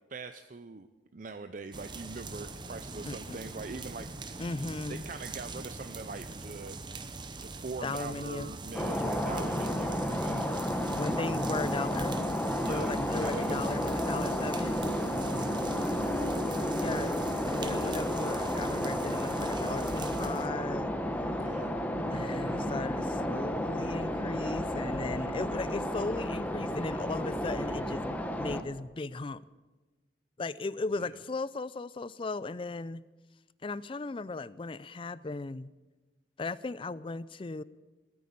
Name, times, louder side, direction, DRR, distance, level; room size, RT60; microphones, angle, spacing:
voice 1, 0.1-4.4 4.9-6.8 7.4-10.6 10.8-11.4 12.6-13.6 15.1-15.7 21.3-21.7 31.0-31.1, right 3 dB, 45° right, 9 dB, 0.6 m, -42 dB
sound 1, 1.7-20.5, right 3 dB, 25° right, 0.9 m, -42 dB
voice 2, 3.0-3.4 4.4-5.1 7.8-8.5 11.0-12.2 12.6-14.8 16.7-21.0 22.1-29.4 30.4-33.0 33.6-35.7 36.4-37.6, left 3 dB, 30° left, 18 dB, 0.4 m, -37 dB
sound 2, 8.7-28.6, equal, 10° left, 0.9 m, -32 dB
17.0 x 9.5 x 8.6 m, 1.2 s
head